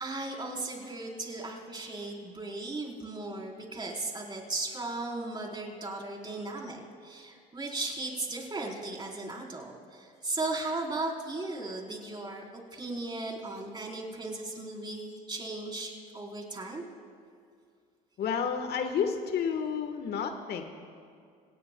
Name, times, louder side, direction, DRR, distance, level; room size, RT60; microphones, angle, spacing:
voice 1, 0.0-16.8, right 2 dB, 20° right, 0 dB, 3.8 m, -36 dB
voice 2, 18.2-20.6, left 6 dB, 55° left, 6 dB, 1.3 m, -30 dB
28.0 x 18.0 x 2.2 m, 2.3 s
hypercardioid pair, 75°, 20 cm